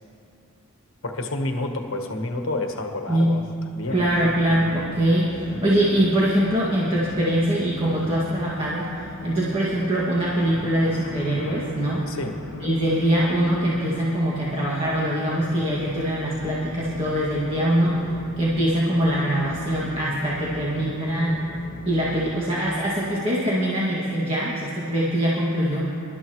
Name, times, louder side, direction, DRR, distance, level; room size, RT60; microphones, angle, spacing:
voice 1, 1.0-3.4 3.7-4.0 12.1-12.3, left 2 dB, 65° left, 3 dB, 1.3 m, -29 dB
sound 1, 3.9-22.3, left 1 dB, 45° left, 1.0 m, -39 dB
voice 2, 3.9-8.9 9.2-12.1 12.5-18.0 18.4-21.4 21.9-25.8, right 1 dB, 25° right, -8 dB, 2.1 m, -23 dB
27.0 x 12.5 x 3.1 m, 2.6 s
head